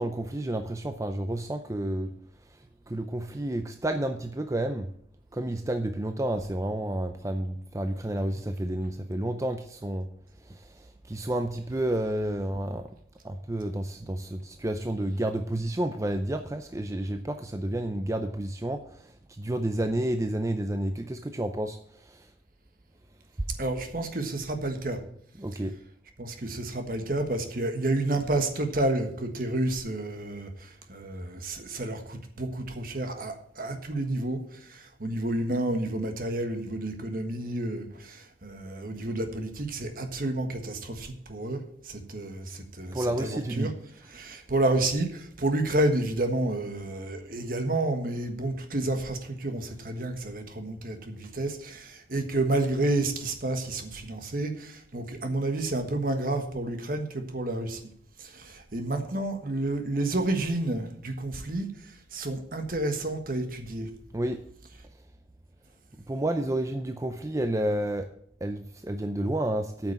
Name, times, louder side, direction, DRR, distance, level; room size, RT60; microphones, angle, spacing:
voice 1, 0.0-2.1 2.9-4.9 5.3-10.1 10.4-12.9 13.2-22.3 25.4-25.8 42.9-43.7 64.1-64.4 66.1-68.1 68.4-69.9, right 1 dB, 15° right, 7 dB, 0.5 m, -30 dB
voice 2, 23.6-25.0 26.2-43.7 44.1-57.8 58.2-63.9, right 2 dB, 50° right, 6 dB, 1.4 m, -30 dB
8.8 x 6.0 x 8.3 m, 0.65 s
head